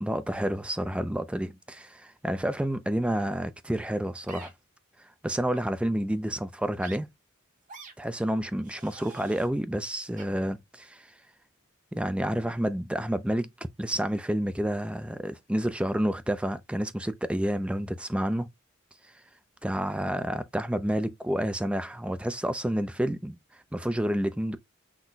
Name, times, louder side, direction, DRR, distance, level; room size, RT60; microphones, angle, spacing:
voice 1, 0.0-4.5 5.2-7.1 8.0-11.1 11.9-13.5 13.8-18.5 19.6-23.4 23.7-24.6, right 1 dB, 5° right, 0.3 m, -29 dB
sound 1, 4.3-4.5 5.4-5.6 6.8-7.0 7.7-7.9 8.6-9.5 10.2-10.3, right 4 dB, 35° right, 1.0 m, -46 dB
6.0 x 2.2 x 3.8 m
head